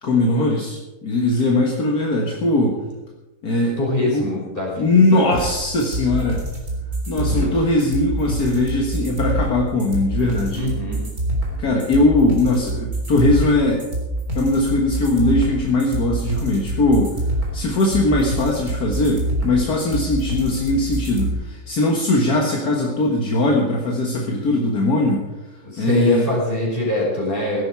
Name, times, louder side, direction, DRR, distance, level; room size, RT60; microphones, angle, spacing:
voice 1, 0.0-2.8 3.4-4.3 4.8-6.4 7.1-10.7 11.6-13.8 14.4-17.1 17.5-25.2 25.8-26.3, left 2 dB, 70° left, -1 dB, 2.1 m, -20 dB
voice 2, 3.8-5.4 7.1-7.6 10.5-11.0 25.6-27.6, left 1 dB, 30° left, -3 dB, 5.3 m, -24 dB
sound 1, 5.3-21.3, right 1 dB, 60° right, 4.3 m, -26 dB
16.5 x 12.5 x 4.7 m, 1.1 s
omnidirectional pair, 1.7 m